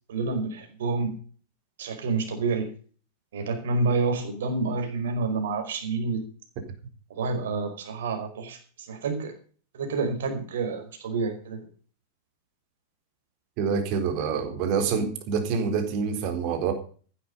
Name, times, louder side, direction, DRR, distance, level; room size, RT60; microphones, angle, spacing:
voice 1, 0.1-1.2 1.8-2.7 3.3-6.2 7.1-9.3 9.7-11.6, right 3 dB, 60° right, 5 dB, 4.9 m, -28 dB
voice 2, 13.6-16.7, right 6 dB, 45° right, 6 dB, 4.1 m, -26 dB
15.0 x 11.0 x 5.4 m, 0.42 s
figure-of-eight pair, 90°, 0 cm